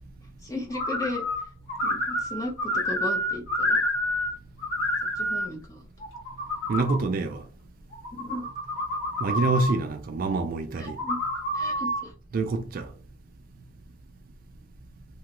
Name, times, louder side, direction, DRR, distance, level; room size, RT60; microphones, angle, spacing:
voice 1, 0.4-1.2 1.8-3.8 5.2-5.9 8.1-8.5 10.8-11.2 11.5-12.1, left 1 dB, 15° left, 0.7 m, -35 dB
sound 1, 0.7-1.4 1.7-4.3 4.6-5.5 6.0-7.0 7.9-9.7 10.9-12.0, left 1 dB, 65° left, 1.1 m, -28 dB
voice 2, 6.7-7.4 9.2-11.0 12.3-12.9, right 3 dB, 45° right, 0.3 m, -26 dB
2.9 x 2.3 x 2.9 m
head